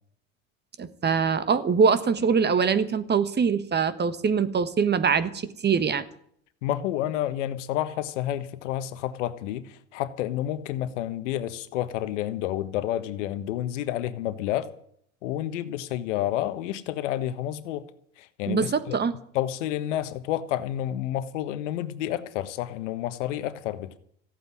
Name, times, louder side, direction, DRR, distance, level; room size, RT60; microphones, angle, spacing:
voice 1, 0.8-6.0 18.5-19.1, right 6 dB, 30° right, 13 dB, 1.5 m, -23 dB
voice 2, 6.6-14.7 15.2-17.8 18.2-19.0 19.3-24.0, left 12 dB, 75° left, 12 dB, 1.4 m, -30 dB
14.5 x 8.6 x 9.8 m, 0.68 s
hypercardioid pair, 85°, 36 cm